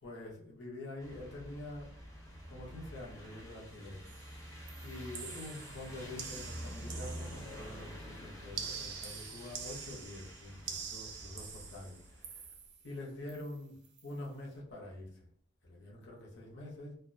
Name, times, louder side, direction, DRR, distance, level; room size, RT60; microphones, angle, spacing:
voice 1, 0.0-1.9 2.5-4.0 4.8-12.5 12.8-15.2 15.6-17.0, left 1 dB, 55° left, -3 dB, 0.7 m, -46 dB
sound 1, 1.0-12.5, equal, 15° left, 0.5 m, -48 dB
sound 2, 4.1-4.4 4.7-7.8 8.5-12.9 13.3-13.6 13.8-14.1, right 6 dB, 50° right, 0.4 m, -46 dB
2.4 x 2.2 x 2.5 m, 0.66 s
head